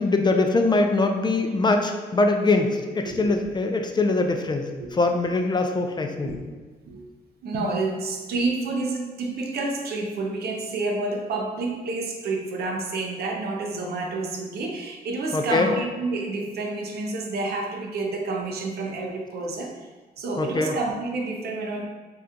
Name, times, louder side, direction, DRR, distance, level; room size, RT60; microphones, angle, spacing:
voice 1, 0.0-6.3 15.3-15.7 20.4-20.8, left 3 dB, 25° left, 4 dB, 0.3 m, -22 dB
voice 2, 7.4-19.7 20.2-21.9, right 3 dB, 75° right, 2 dB, 0.5 m, -29 dB
2.8 x 2.3 x 3.5 m, 1.4 s
cardioid pair, 70°, 16 cm